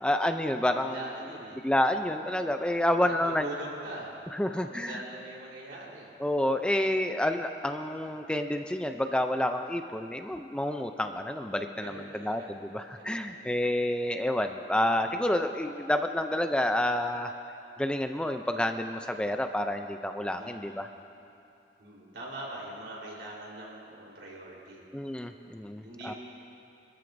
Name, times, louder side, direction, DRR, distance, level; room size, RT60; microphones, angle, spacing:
voice 1, 0.0-1.0 1.6-3.5 4.3-5.0 6.2-17.3 17.8-20.9 24.9-26.1, left 1 dB, 5° left, 6 dB, 0.4 m, -29 dB
voice 2, 0.7-1.6 2.9-4.1 4.4-6.1 11.7-12.5 12.9-13.6 14.9-15.1 20.4-21.0 21.8-24.8 25.8-26.2, right 1 dB, 85° right, -4 dB, 3.7 m, -43 dB
24.5 x 13.5 x 2.6 m, 2.7 s
head